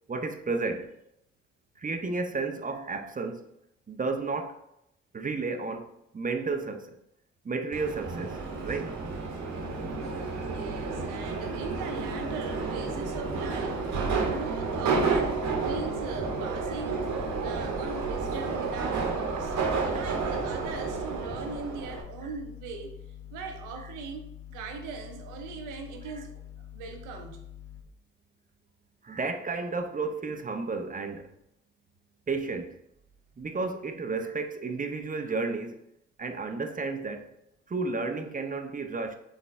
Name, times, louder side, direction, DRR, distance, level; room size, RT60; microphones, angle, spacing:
voice 1, 0.1-0.9 1.8-3.5 3.9-4.6 5.1-7.0 7.4-9.0 14.2-14.4 19.6-19.9 29.0-31.3 32.3-32.8 33.4-35.8 36.2-37.3 37.7-39.2, right 3 dB, 25° right, 0.6 m, -32 dB
Subway metro underground, 7.7-22.0, right 4 dB, 65° right, 1.0 m, -31 dB
sound 1, 9.5-27.8, left 11 dB, 75° left, 0.7 m, -46 dB
voice 2, 10.5-22.9 23.3-26.3 26.6-27.4, right 5 dB, 85° right, 0.7 m, -40 dB
4.0 x 3.4 x 3.6 m
hypercardioid pair, 45°, 30 cm